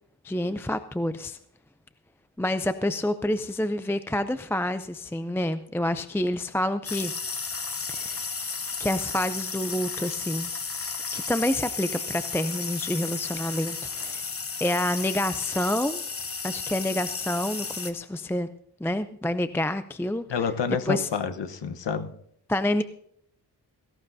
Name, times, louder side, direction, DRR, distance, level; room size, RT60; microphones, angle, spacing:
voice 1, 0.2-1.4 2.4-7.1 7.9-8.2 8.8-10.5 11.1-14.2 14.6-16.0 16.4-18.5 18.8-20.2 20.9-21.1 22.5-22.8, left 1 dB, 5° left, 11 dB, 0.4 m, -28 dB
sound 1, 6.8-17.9, left 5 dB, 35° left, 0.9 m, -33 dB
voice 2, 20.3-22.1, left 6 dB, 85° left, 9 dB, 1.1 m, -28 dB
17.5 x 16.5 x 2.7 m, 0.71 s
wide cardioid pair, 110°, 41 cm